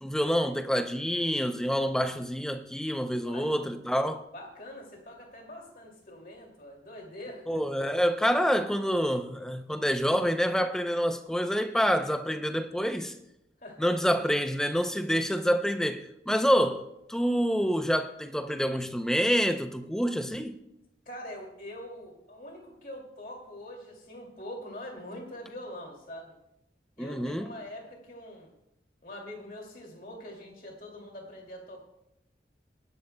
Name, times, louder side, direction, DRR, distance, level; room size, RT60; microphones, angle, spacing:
voice 1, 0.0-4.2 7.5-13.1 13.8-20.6 27.0-27.5, equal, 5° left, 0.5 m, -27 dB
voice 2, 4.3-7.6 13.6-13.9 21.1-26.4 27.0-28.5 29.0-31.8, left 1 dB, 50° left, 2.4 m, -44 dB
20.5 x 11.5 x 2.2 m
head